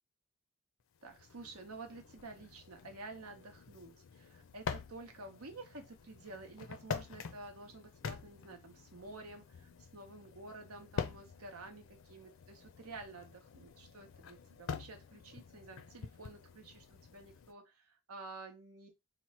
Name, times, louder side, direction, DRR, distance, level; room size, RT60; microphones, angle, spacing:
sound 1, 1.0-17.5, left 6 dB, 65° left, 0.4 m, -47 dB
voice 1, 1.0-18.9, right 3 dB, 90° right, 0.9 m, -51 dB
3.0 x 2.1 x 4.2 m
head